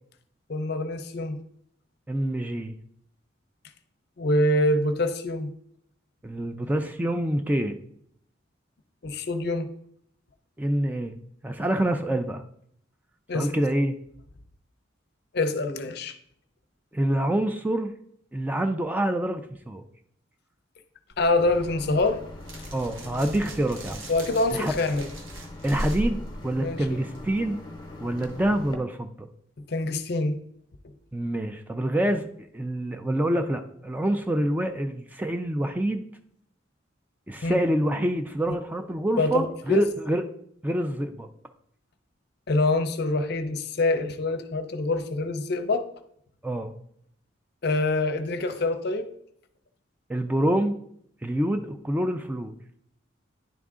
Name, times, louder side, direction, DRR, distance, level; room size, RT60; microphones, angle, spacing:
voice 1, 0.5-1.4 4.2-5.5 9.0-9.7 13.3-13.6 15.3-16.2 21.2-22.2 24.1-25.1 26.6-27.0 29.7-30.4 37.4-37.6 38.5-38.6 39.2-39.9 42.5-45.9 47.6-49.1, left 2 dB, 55° left, 9 dB, 0.6 m, -25 dB
voice 2, 2.1-2.7 6.2-7.8 10.6-11.2 11.4-12.4 13.3-14.0 16.9-17.9 18.3-19.4 19.7-19.8 22.7-24.0 24.5-24.7 25.6-27.6 28.0-29.3 31.1-32.3 32.5-36.0 37.3-40.2 40.6-41.3 46.4-46.7 50.1-50.7 51.2-52.5, right 1 dB, 10° right, 7 dB, 0.3 m, -26 dB
sound 1, 21.1-27.4, equal, 85° right, 1.3 m, -38 dB
sound 2, 21.4-28.8, left 1 dB, 25° left, 0.9 m, -42 dB
10.0 x 3.7 x 3.6 m, 0.68 s
head